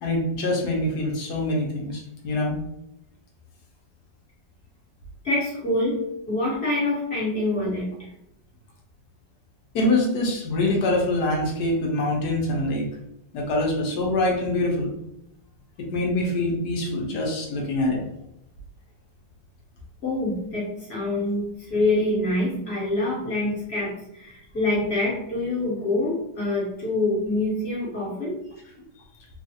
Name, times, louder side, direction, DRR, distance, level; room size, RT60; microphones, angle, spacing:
voice 1, 0.0-2.6 9.7-12.9 13.3-14.9 15.9-18.0, left 2 dB, 70° left, -1 dB, 1.0 m, -24 dB
voice 2, 5.2-6.0 6.3-7.9 20.0-28.3, left 2 dB, 45° left, -6 dB, 0.9 m, -25 dB
3.2 x 2.3 x 2.6 m, 0.80 s
omnidirectional pair, 2.2 m